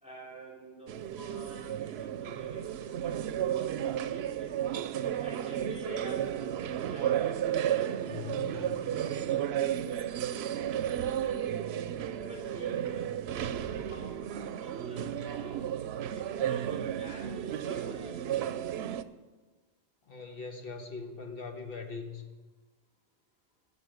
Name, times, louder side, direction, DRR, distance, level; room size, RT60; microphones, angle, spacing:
voice 1, 0.0-4.6 5.2-11.6 12.2-15.6 16.1-18.4, right 1 dB, 5° right, -5 dB, 2.7 m, -48 dB
sound 1, 0.9-19.0, right 10 dB, 85° right, 0.8 m, -33 dB
voice 2, 8.0-8.9 20.1-22.2, left 5 dB, 65° left, 4 dB, 1.5 m, -41 dB
12.5 x 5.8 x 9.3 m, 1.3 s
omnidirectional pair, 1.0 m